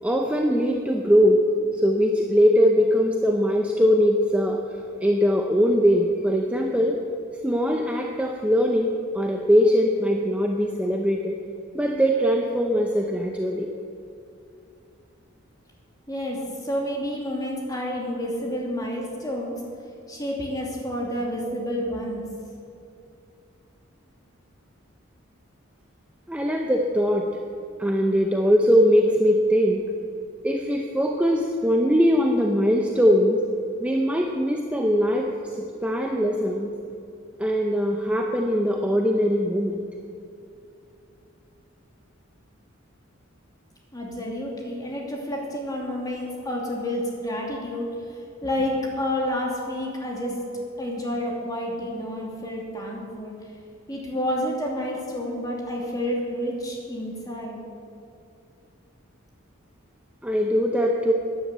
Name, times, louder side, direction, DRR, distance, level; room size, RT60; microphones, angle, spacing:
voice 1, 0.0-1.4 1.7-4.6 5.0-7.0 7.4-8.9 9.1-11.4 11.7-13.7 26.3-27.3 27.8-29.8 30.4-33.4 33.8-36.7 37.4-39.8 60.2-61.1, equal, 5° right, 1 dB, 0.8 m, -21 dB
voice 2, 16.1-19.5 20.1-22.2 43.9-50.4 50.8-53.3 53.9-57.6, left 1 dB, 20° left, -2 dB, 2.7 m, -29 dB
12.5 x 10.5 x 8.2 m, 2.6 s
head